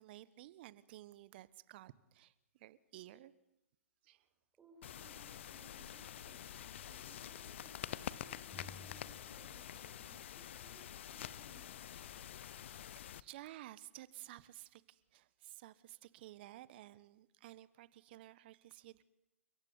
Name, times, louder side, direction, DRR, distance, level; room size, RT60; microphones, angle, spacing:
voice 1, 0.0-3.3 4.0-4.3 12.5-19.0, right 15 dB, 45° right, 18 dB, 1.3 m, -54 dB
voice 2, 4.6-11.8, right 2 dB, 15° right, 1 dB, 4.9 m, -64 dB
sound 1, 4.8-13.2, left 10 dB, 55° left, 1.0 m, -47 dB
sound 2, 8.5-10.3, left 3 dB, 10° left, 1.4 m, -58 dB
29.5 x 16.0 x 9.7 m, 0.86 s
figure-of-eight pair, 120°, 8 cm